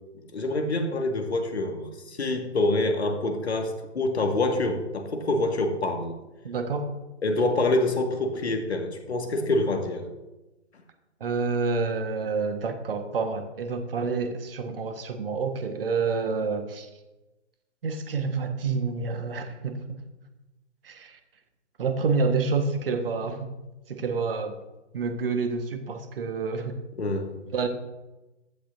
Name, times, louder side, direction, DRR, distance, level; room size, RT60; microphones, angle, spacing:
voice 1, 0.3-6.2 7.2-10.1 27.0-27.3, left 2 dB, 65° left, 5 dB, 1.9 m, -26 dB
voice 2, 6.4-6.9 11.2-16.9 17.8-20.0 20.8-21.2 21.8-23.5 23.9-24.6 24.9-26.8 27.5-27.7, right 4 dB, 50° right, 7 dB, 1.5 m, -28 dB
15.5 x 11.5 x 2.7 m, 1.1 s
figure-of-eight pair, 125°, 36 cm